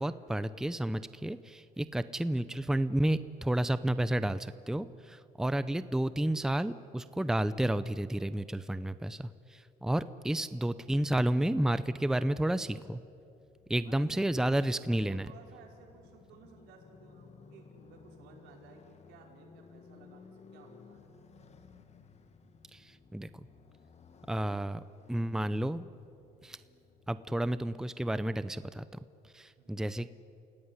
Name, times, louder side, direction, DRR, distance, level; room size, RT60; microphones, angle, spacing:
voice 1, 0.0-13.0 13.7-15.3 22.7-23.3 24.3-24.8 25.1-25.8 26.4-26.6 27.1-29.0 29.3-30.1, right 1 dB, 5° right, 14 dB, 0.7 m, -31 dB
Motorcycle, 12.3-28.3, left 5 dB, 40° left, 2.1 m, -58 dB
voice 2, 13.8-21.1 29.6-29.7, right 5 dB, 85° right, 1 dB, 5.1 m, -56 dB
28.5 x 17.0 x 9.8 m, 2.6 s
cardioid pair, 110°, 17 cm